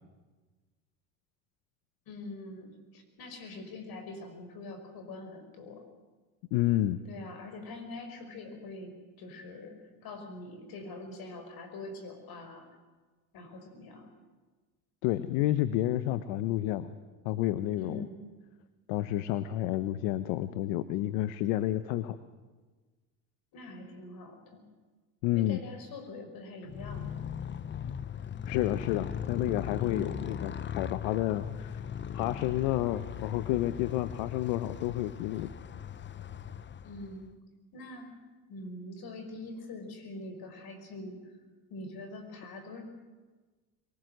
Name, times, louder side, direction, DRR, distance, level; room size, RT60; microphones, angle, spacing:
voice 1, 2.1-5.9 7.1-12.7 13.3-14.1 17.8-18.2 23.5-24.7 25.3-27.3 29.8-30.2 36.8-37.4 37.7-38.2 38.5-41.3 41.7-42.8, left 2 dB, 50° left, 7 dB, 5.6 m, -44 dB
voice 2, 6.5-7.0 15.0-16.9 17.2-18.0 18.9-22.2 25.2-25.6 27.8-27.9 28.5-31.8 32.1-35.5, left 14 dB, 70° left, 13 dB, 1.0 m, -30 dB
Motorcycle, 26.6-37.3, left 8 dB, 25° left, 0.8 m, -39 dB
23.0 x 19.0 x 8.0 m, 1.3 s
hypercardioid pair, 85°, 45 cm